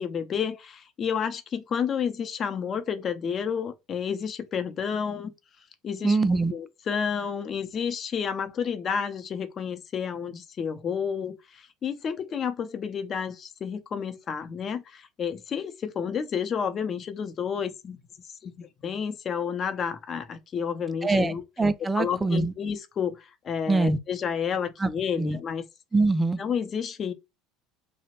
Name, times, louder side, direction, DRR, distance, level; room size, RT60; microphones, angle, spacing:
voice 1, 0.0-5.3 5.8-6.2 6.5-18.0 18.4-21.4 22.0-25.6 26.4-27.1, left 7 dB, 40° left, 0.5 m, -30 dB
voice 2, 6.0-6.5 21.0-21.3 21.6-22.5 23.7-24.0 24.8-24.9 25.2-25.4 25.9-26.4, right 3 dB, 15° right, 0.3 m, -23 dB
2.8 x 2.0 x 2.9 m
hypercardioid pair, 80°, 0 cm